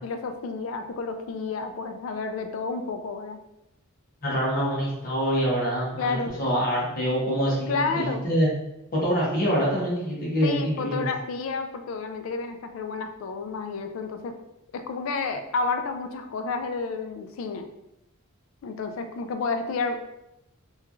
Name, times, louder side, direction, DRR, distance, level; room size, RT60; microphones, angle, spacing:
voice 1, 0.0-3.4 6.0-6.3 7.7-8.2 10.4-14.3 14.7-17.7 18.6-20.0, left 4 dB, 65° left, 6 dB, 0.3 m, -30 dB
voice 2, 4.2-8.5 8.9-11.1, equal, 40° left, -5 dB, 0.7 m, -25 dB
2.9 x 2.3 x 2.4 m, 0.86 s
head